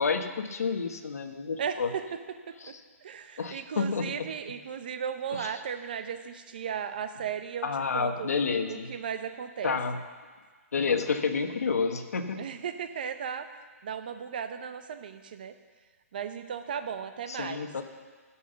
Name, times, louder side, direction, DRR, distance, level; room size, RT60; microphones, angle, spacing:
voice 1, 0.0-1.9 2.6-2.7 3.4-4.3 5.3-5.5 7.6-8.9 9.6-10.0 10.7-12.4 17.3-17.8, left 5 dB, 75° left, 6 dB, 1.2 m, -29 dB
voice 2, 1.6-2.0 2.5-2.7 3.0-7.7 7.9-8.3 8.7-9.8 12.4-13.5 13.8-15.5 16.1-17.7, right 7 dB, 35° right, 9 dB, 0.6 m, -36 dB
15.5 x 5.6 x 6.8 m, 1.5 s
hypercardioid pair, 175°, 8 cm